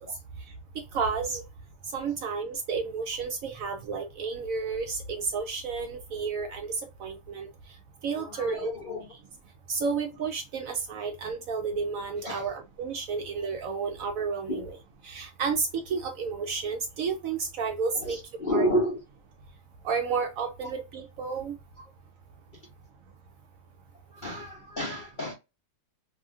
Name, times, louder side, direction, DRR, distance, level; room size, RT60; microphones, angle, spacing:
voice 1, 0.9-1.4 1.9-6.7 7.0-7.5 8.0-8.7 9.1-9.2 9.7-14.8 15.0-18.2 18.5-18.7 19.8-21.5, right 5 dB, 70° right, 0.8 m, -31 dB
voice 2, 8.1-9.1 12.2-12.4 14.5-14.6 17.9-19.0 24.1-25.3, equal, 55° left, 0.5 m, -30 dB
2.7 x 2.5 x 2.4 m
omnidirectional pair, 1.8 m